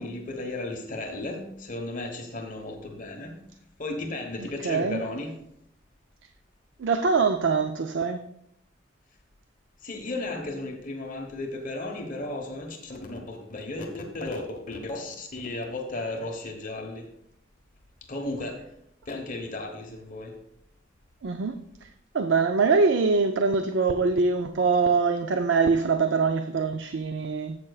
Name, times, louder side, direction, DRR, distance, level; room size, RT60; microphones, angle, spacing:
voice 1, 0.0-3.4 3.8-5.4 9.8-17.1 18.1-18.6 19.1-20.3, left 2 dB, 40° left, 2 dB, 1.2 m, -34 dB
voice 2, 4.6-5.0 6.8-8.2 21.2-21.6 22.1-27.6, right 4 dB, 65° right, 8 dB, 0.5 m, -23 dB
13.0 x 7.8 x 2.4 m, 0.75 s
head